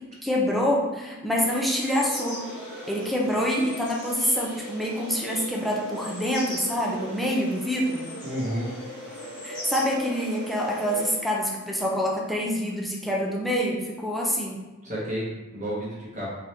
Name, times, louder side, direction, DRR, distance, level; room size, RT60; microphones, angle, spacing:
voice 1, 0.2-2.4 2.9-8.1 9.4-14.6, equal, ahead, -3 dB, 0.5 m, -26 dB
sound 1, 1.4-11.1, equal, 20° left, 1.4 m, -38 dB
voice 2, 8.2-8.7 14.8-16.4, equal, 35° right, -7 dB, 1.0 m, -31 dB
3.8 x 2.9 x 3.3 m, 1.1 s
head